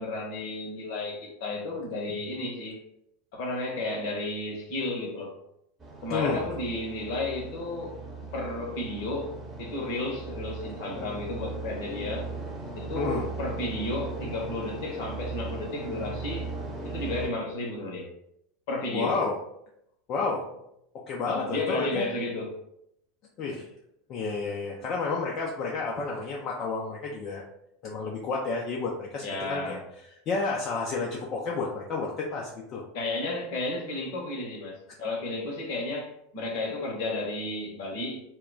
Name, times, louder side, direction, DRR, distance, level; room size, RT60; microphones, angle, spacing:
voice 1, 0.0-2.8 3.3-5.4 6.0-8.0 8.3-12.3 12.7-16.5 16.8-18.1 18.7-19.2 21.3-22.5 29.2-29.8 32.9-38.2, left 2 dB, 60° left, 0.8 m, -33 dB
sound 1, 5.8-17.3, right 3 dB, 25° right, 0.8 m, -38 dB
voice 2, 6.1-6.5 12.9-13.3 18.9-19.4 20.1-20.6 21.1-22.0 23.4-23.7 24.1-27.4 27.8-29.2 29.5-29.8 30.3-32.8, left 4 dB, 40° left, 0.4 m, -30 dB
2.2 x 2.1 x 3.7 m
figure-of-eight pair, 80°, 0 cm